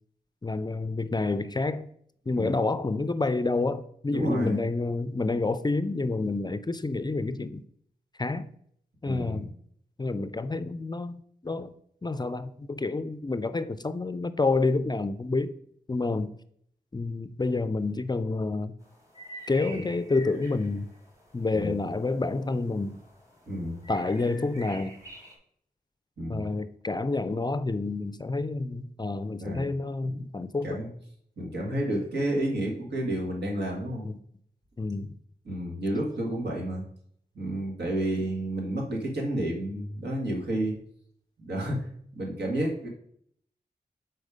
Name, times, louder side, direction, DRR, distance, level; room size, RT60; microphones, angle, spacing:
voice 1, 0.4-1.9 2.3-7.6 8.2-8.5 9.0-9.5 10.0-11.2 11.4-11.7 12.0-15.5 15.9-16.3 16.9-18.7 19.5-20.9 21.3-23.0 23.9-25.0 26.3-30.8 34.0-34.2 34.8-35.2, left 3 dB, 25° left, 0.4 m, -28 dB
voice 2, 4.1-4.6 9.0-9.4 19.7-19.8 21.5-21.8 23.5-23.8 26.2-26.5 29.4-29.7 30.0-30.3 30.6-30.9 31.4-34.1 35.5-36.8 37.4-40.8 41.4-42.9, right 1 dB, 80° right, 1.9 m, -31 dB
sound 1, 18.8-25.4, right 1 dB, 20° right, 2.0 m, -48 dB
6.4 x 4.4 x 4.9 m
wide cardioid pair, 115°, 17 cm